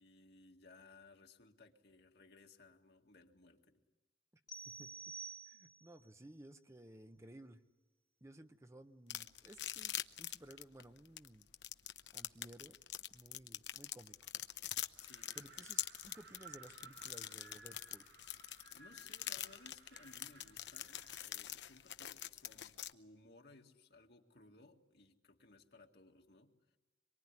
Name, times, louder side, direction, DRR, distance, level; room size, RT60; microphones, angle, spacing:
voice 1, 0.0-3.8 15.0-15.4 18.5-26.8, left 3 dB, 65° left, 3 dB, 2.0 m, -62 dB
sound 1, 4.5-6.0, right 4 dB, 25° left, 1.2 m, -49 dB
voice 2, 5.5-7.6 8.2-9.9 10.2-11.5 12.1-12.8 13.1-14.3 15.3-18.1, right 1 dB, 15° right, 8 dB, 0.9 m, -57 dB
sound 2, 9.1-22.9, left 13 dB, 90° left, 0.8 m, -44 dB
Wind, 14.9-21.4, right 4 dB, 85° right, 2.0 m, -60 dB
25.0 x 23.0 x 9.8 m, 1.1 s
head